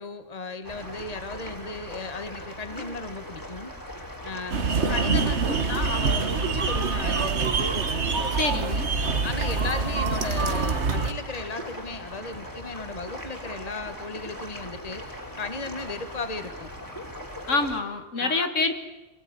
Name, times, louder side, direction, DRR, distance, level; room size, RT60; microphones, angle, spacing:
voice 1, 0.0-3.7 4.2-4.6 4.9-7.7 9.2-16.7 18.2-18.5, left 3 dB, 30° left, 9 dB, 1.7 m, -35 dB
sound 1, 0.6-17.8, left 1 dB, 15° left, 3.1 m, -39 dB
sound 2, 4.5-11.1, right 4 dB, 60° right, 1.8 m, -25 dB
voice 2, 8.4-8.9 17.5-18.8, left 3 dB, 70° left, 8 dB, 2.1 m, -26 dB
25.5 x 19.5 x 9.7 m, 1.1 s
omnidirectional pair, 1.3 m